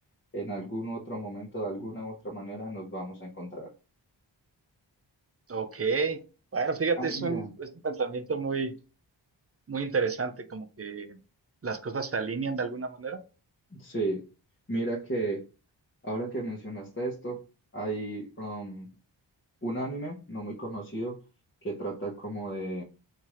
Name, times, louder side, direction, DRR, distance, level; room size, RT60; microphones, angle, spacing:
voice 1, 0.3-3.7 6.9-7.5 13.7-14.2 14.7-15.4 16.0-17.4 17.7-18.9 19.6-21.2 21.6-22.8, right 2 dB, 25° left, -2 dB, 1.1 m, -34 dB
voice 2, 5.5-6.2 6.5-8.7 9.7-11.2 11.6-13.2, right 4 dB, 30° right, 8 dB, 0.6 m, -30 dB
3.5 x 2.8 x 3.1 m, 0.34 s
cardioid pair, 40°, 46 cm